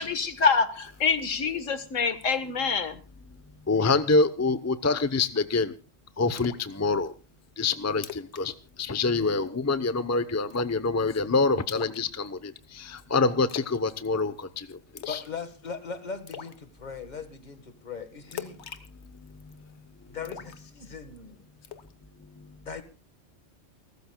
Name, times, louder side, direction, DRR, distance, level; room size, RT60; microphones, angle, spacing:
voice 1, 0.0-3.0, left 5 dB, 85° left, 11 dB, 1.7 m, -26 dB
voice 2, 3.7-5.7 6.2-6.5 6.8-7.1 7.6-8.0 8.4-8.5 8.9-12.3 13.1-14.3 15.1-15.2, left 3 dB, 15° left, 12 dB, 0.7 m, -25 dB
Splash splatter, 6.4-6.7 7.1-7.2 7.6-7.7 7.9-8.4 8.7-8.9 9.2-9.6 10.5-10.9 11.7-12.6 13.5-13.8 14.0-14.4 15.0-15.3 15.7-15.8 16.3-16.6 18.3-19.6 20.2-21.2 21.6-21.9, left 8 dB, 60° left, 1.4 m, -41 dB
voice 3, 15.1-18.6 20.1-21.4 22.7-22.8, left 5 dB, 35° left, 10 dB, 1.7 m, -39 dB
29.0 x 13.5 x 2.3 m, 0.30 s
omnidirectional pair, 1.3 m